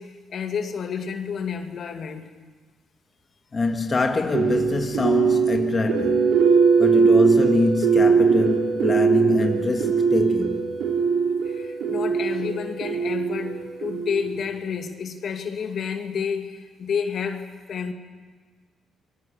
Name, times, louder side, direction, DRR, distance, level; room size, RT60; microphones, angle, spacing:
voice 1, 0.0-2.3 11.4-17.9, left 6 dB, 60° left, 2.2 m, -30 dB
voice 2, 3.5-6.5 6.8-10.8, left 3 dB, 35° left, 1.9 m, -25 dB
sound 1, 4.3-14.4, right 5 dB, 85° right, 3.8 m, -21 dB
27.5 x 22.5 x 6.8 m
cardioid pair, 90°, 0 cm